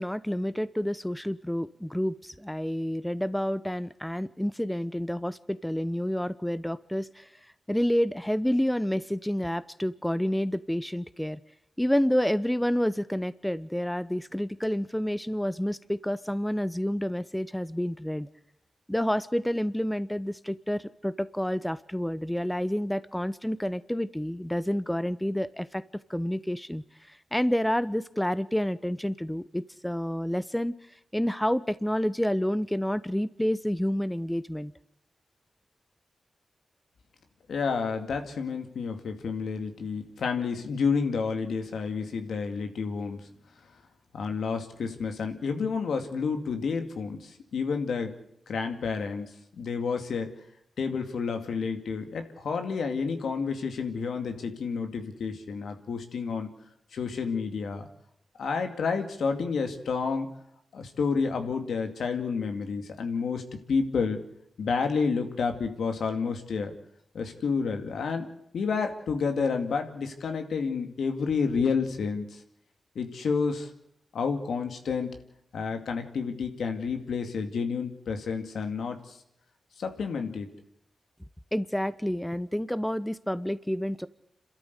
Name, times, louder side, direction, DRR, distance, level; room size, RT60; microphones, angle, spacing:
voice 1, 0.0-7.3 7.7-11.4 11.8-18.3 18.9-25.8 26.1-30.7 31.1-34.7 81.5-84.1, equal, 5° left, 16 dB, 0.8 m, -29 dB
voice 2, 37.5-43.3 44.1-48.2 48.5-50.3 50.8-56.5 56.9-57.9 58.4-60.3 60.7-64.2 64.6-66.7 67.1-68.3 68.5-72.4 73.0-73.7 74.1-75.1 75.5-79.2 79.8-80.5, left 5 dB, 80° left, 6 dB, 2.3 m, -30 dB
27.5 x 13.0 x 8.2 m, 0.77 s
cardioid pair, 45°, 0 cm